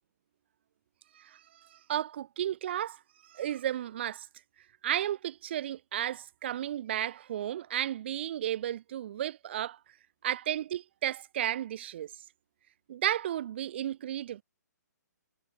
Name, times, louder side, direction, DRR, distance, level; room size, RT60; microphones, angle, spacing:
voice 1, 1.1-4.3 4.8-9.8 10.2-12.1 12.9-14.4, right 11 dB, 35° right, 4.3 m, -33 dB
hypercardioid pair, 170°, 10 cm